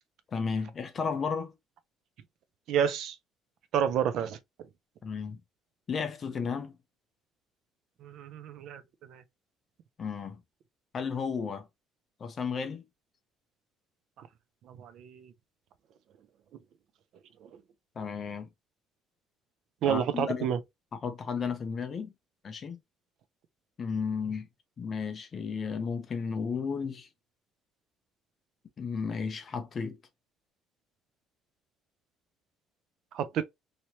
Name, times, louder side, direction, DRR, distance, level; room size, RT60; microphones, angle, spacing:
voice 1, 0.3-1.5 5.0-5.4 5.9-6.8 10.0-10.4 10.9-11.6 12.2-12.8 18.0-18.5 19.8-20.5 20.9-22.1 22.4-22.8 23.8-24.5 24.8-27.1 28.8-30.0, left 5 dB, 30° left, 0.6 m, -33 dB
voice 2, 2.7-3.1 3.7-4.4 8.0-8.8 9.1-9.2 14.8-15.3 19.8-20.6 33.1-33.4, right 8 dB, 55° right, 0.4 m, -29 dB
3.1 x 2.9 x 2.7 m
cardioid pair, 165°, 0 cm